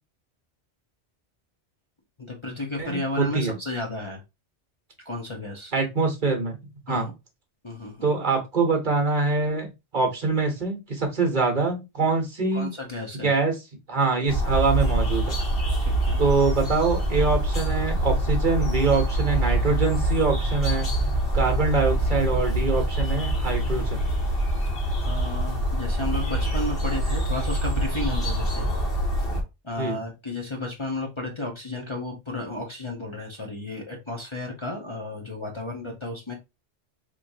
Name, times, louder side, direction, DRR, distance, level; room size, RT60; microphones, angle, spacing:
voice 1, 2.2-4.2 5.0-5.7 6.9-7.1 7.6-8.1 12.5-13.3 15.8-16.2 25.0-28.7 29.6-36.3, left 2 dB, 30° left, 1 dB, 0.9 m, -33 dB
voice 2, 2.8-3.6 5.7-6.6 6.9-7.1 8.0-12.7 13.1-13.6 13.9-15.4 16.2-20.9 21.3-24.0 29.8-30.0, right 3 dB, 45° right, 3 dB, 1.2 m, -24 dB
sound 1, 14.3-29.4, right 1 dB, 55° left, 1.6 m, -25 dB
4.3 x 3.0 x 2.6 m, 0.23 s
omnidirectional pair, 1.2 m